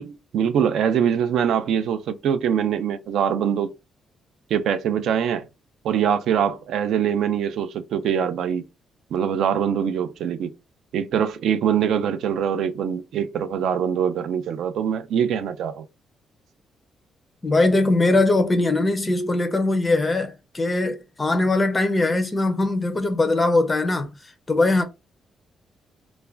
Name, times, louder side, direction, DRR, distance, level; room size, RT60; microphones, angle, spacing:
voice 1, 0.0-3.7 4.5-5.4 5.8-8.7 9.1-10.5 10.9-15.9, right 8 dB, 65° right, 0.3 m, -23 dB
voice 2, 17.4-24.1 24.5-24.8, left 2 dB, 15° left, 0.4 m, -21 dB
2.3 x 2.1 x 3.2 m
cardioid pair, 180°, 0 cm